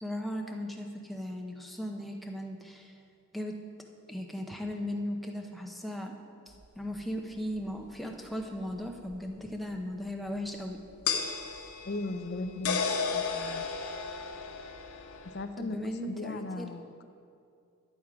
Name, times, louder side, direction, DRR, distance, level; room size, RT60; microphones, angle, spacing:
voice 1, 0.0-3.0 3.3-3.6 4.1-6.1 6.5-10.8 11.2-11.4 15.6-16.7, equal, ahead, 1 dB, 0.6 m, -37 dB
sound 1, 6.6-6.7 9.1-9.2 11.1-15.4, left 5 dB, 85° left, 0.9 m, -33 dB
voice 2, 11.8-13.6 15.3-17.1, left 2 dB, 45° left, 10 dB, 0.5 m, -37 dB
11.0 x 7.3 x 4.8 m, 2.5 s
head